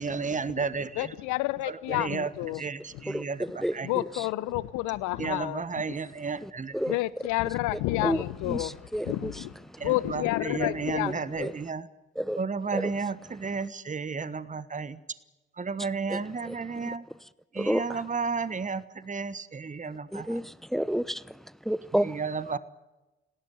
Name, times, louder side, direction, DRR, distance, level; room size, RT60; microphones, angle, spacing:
voice 1, 0.0-1.1 1.6-3.9 5.2-6.8 9.8-11.9 12.4-15.0 15.5-17.0 17.5-20.4 21.9-22.6, right 5 dB, 25° right, 1.3 m, -33 dB
voice 2, 1.0-2.6 3.8-5.6 6.9-8.7 9.1-9.5 9.8-11.1 11.4-11.5, left 18 dB, 70° left, 1.0 m, -29 dB
voice 3, 3.1-4.3 6.4-7.0 7.7-9.8 11.4-11.5 12.2-12.4 12.7-12.9 16.1-16.5 16.8-17.0 17.6-18.0 20.1-22.2, equal, ahead, 0.8 m, -31 dB
19.0 x 18.0 x 10.0 m
figure-of-eight pair, 45°, 31 cm